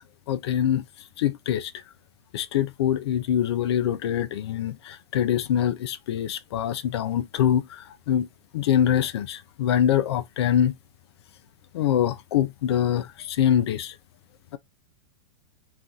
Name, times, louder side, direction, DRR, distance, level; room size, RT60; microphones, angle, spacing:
voice 1, 0.3-0.8 1.2-1.8 2.3-8.3 8.5-10.7 11.7-13.9, left 10 dB, 65° left, 0.4 m, -24 dB
2.6 x 2.4 x 3.6 m
hypercardioid pair, 100°, 15 cm